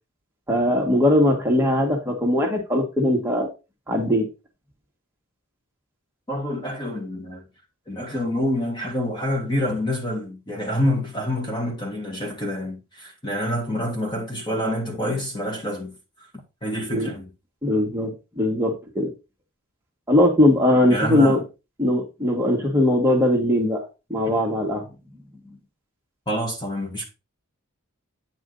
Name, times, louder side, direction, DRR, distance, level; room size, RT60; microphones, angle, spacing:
voice 1, 0.5-3.5 3.9-4.3 16.9-17.1 17.6-19.1 20.1-21.4 21.8-24.9, left 1 dB, 10° right, 1.8 m, -20 dB
voice 2, 6.3-7.5 7.9-15.9 16.6-17.3 20.9-21.4 26.3-27.0, equal, 20° left, 1.7 m, -27 dB
9.0 x 4.9 x 3.9 m
head